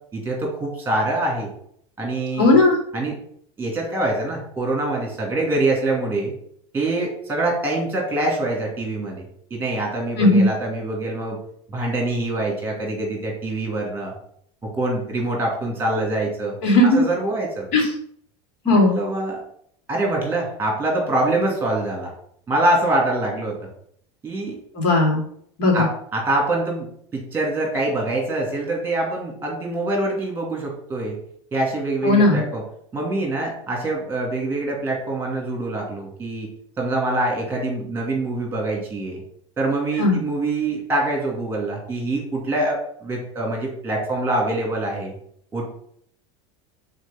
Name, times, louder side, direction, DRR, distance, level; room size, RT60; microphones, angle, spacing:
voice 1, 0.1-1.5 2.0-2.6 2.9-3.1 3.6-6.3 6.7-9.2 9.5-11.4 11.7-14.1 14.7-16.6 16.9-17.7 18.6-19.4 19.9-22.1 22.5-23.6 24.2-24.6 25.7-26.9 27.1-31.2 31.5-32.6 32.9-36.5 36.8-39.2 39.6-45.1 45.5-45.7, right 2 dB, 15° right, 0 dB, 2.8 m, -24 dB
voice 2, 2.4-2.8 10.2-10.5 16.6-17.0 17.7-17.8 18.6-19.0 24.7-25.2 25.6-25.9 32.0-32.4 40.0-40.2, left 2 dB, 70° left, -1 dB, 2.7 m, -16 dB
5.1 x 4.5 x 5.4 m, 0.65 s
supercardioid pair, 120°, 15 cm